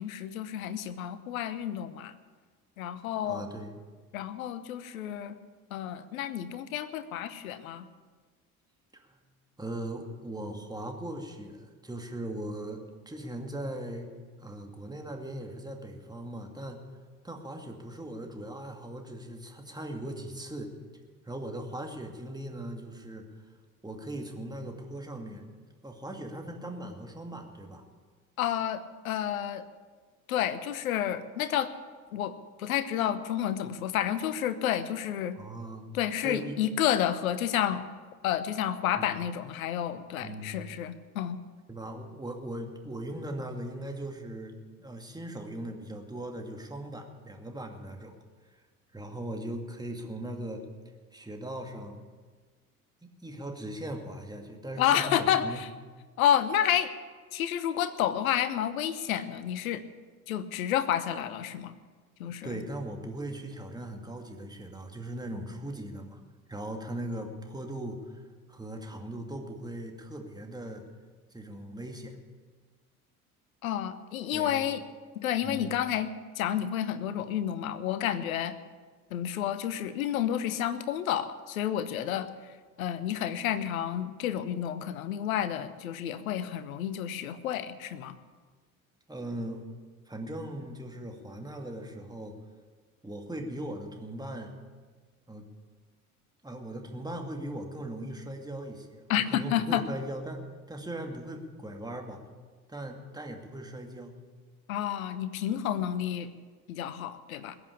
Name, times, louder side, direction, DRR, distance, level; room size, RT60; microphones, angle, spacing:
voice 1, 0.0-2.1 2.8-3.4 4.1-5.4 5.7-7.9 28.4-29.7 30.3-31.7 32.1-35.4 35.9-37.9 38.2-41.4 54.8-55.7 56.2-56.9 57.3-59.8 60.3-61.8 62.2-62.6 73.6-74.8 75.1-78.5 79.1-88.2 99.1-99.8 104.7-106.3 106.7-107.6, left 10 dB, 70° left, 13 dB, 1.0 m, -30 dB
voice 2, 3.2-3.7 8.9-9.2 9.6-14.1 14.4-16.8 17.2-20.7 21.2-23.3 23.8-25.5 25.8-27.8 35.4-35.9 36.2-36.6 39.0-39.1 40.2-40.6 41.7-44.5 44.8-48.1 48.5-48.6 48.9-50.7 51.1-52.0 53.0-55.6 60.4-60.5 62.2-66.2 66.5-68.2 68.5-70.8 71.3-72.2 74.3-74.6 75.4-75.7 89.1-89.7 90.1-92.4 93.0-94.5 95.3-95.5 96.4-100.4 100.7-102.2 102.7-104.1, right 1 dB, 10° right, 2 dB, 2.4 m, -39 dB
20.5 x 8.1 x 8.5 m, 1.5 s
figure-of-eight pair, 55°, 43 cm